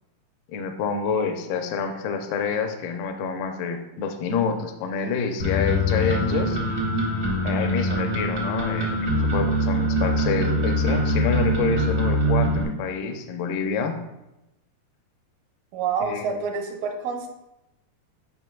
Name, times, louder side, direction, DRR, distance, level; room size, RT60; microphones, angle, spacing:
voice 1, 0.5-6.6 7.4-14.0 16.0-16.4, left 5 dB, 80° left, 5 dB, 2.4 m, -27 dB
sound 1, 5.4-12.6, equal, 60° right, 0.7 m, -23 dB
voice 2, 15.7-17.3, right 5 dB, 80° right, 2 dB, 2.1 m, -27 dB
11.0 x 5.6 x 2.3 m, 0.94 s
omnidirectional pair, 5.0 m